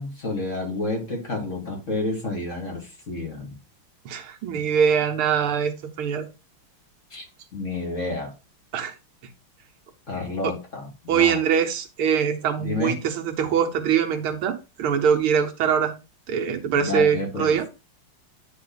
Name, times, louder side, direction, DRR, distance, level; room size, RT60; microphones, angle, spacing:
voice 1, 0.0-3.6 7.1-7.2 7.5-8.3 10.1-11.4 12.6-13.0 16.8-17.6, left 2 dB, 35° left, 2.8 m, -30 dB
voice 2, 4.1-5.7 6.0-6.3 8.7-8.9 10.4-10.5 11.1-15.9 16.3-17.7, right 7 dB, 80° right, 1.8 m, -23 dB
9.5 x 4.2 x 4.0 m
omnidirectional pair, 2.3 m